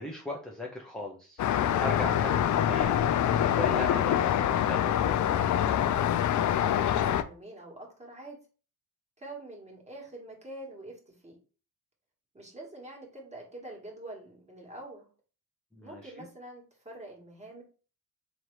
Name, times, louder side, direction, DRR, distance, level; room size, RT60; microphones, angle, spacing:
voice 1, 0.0-1.4 1.8-3.1 3.4-5.3 15.7-16.3, left 1 dB, ahead, -1 dB, 0.6 m, -38 dB
Traffic noise roadway noise, 1.4-7.2, left 10 dB, 50° left, 0.4 m, -25 dB
voice 2, 6.5-8.4 9.2-11.3 12.3-15.1 15.8-17.6, right 1 dB, 15° right, -1 dB, 1.6 m, -45 dB
3.9 x 2.9 x 3.2 m, 0.37 s
cardioid pair, 100°, 40 cm